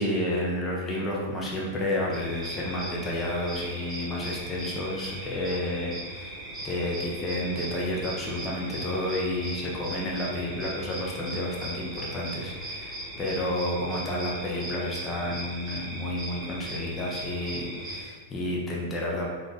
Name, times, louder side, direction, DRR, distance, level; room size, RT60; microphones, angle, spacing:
voice 1, 0.0-6.3 6.6-19.3, left 1 dB, 20° left, -4 dB, 1.0 m, -31 dB
sound 1, 2.1-18.0, right 1 dB, 20° right, 1.4 m, -38 dB
4.3 x 2.8 x 3.4 m, 1.4 s
hypercardioid pair, 125°, 0 cm